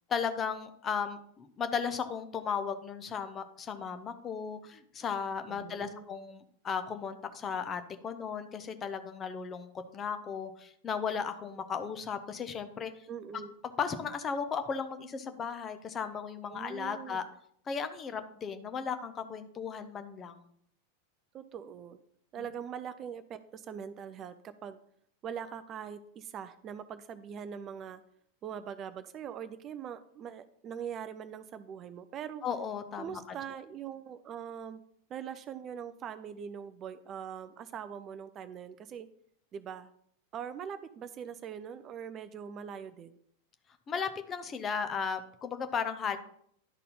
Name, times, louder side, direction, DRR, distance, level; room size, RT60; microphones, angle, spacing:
voice 1, 0.1-9.7 9.9-13.1 13.3-17.3 17.7-20.4 32.4-33.2 43.9-46.2, left 6 dB, 25° left, 9 dB, 0.8 m, -35 dB
voice 2, 5.5-6.0 13.1-13.5 16.5-17.2 21.3-22.0 22.3-24.8 25.2-28.0 28.4-32.4 33.0-34.8 35.1-39.1 39.5-39.9 40.3-43.2, right 8 dB, 30° right, 12 dB, 0.5 m, -42 dB
11.0 x 4.1 x 5.5 m, 0.67 s
figure-of-eight pair, 90°, 0 cm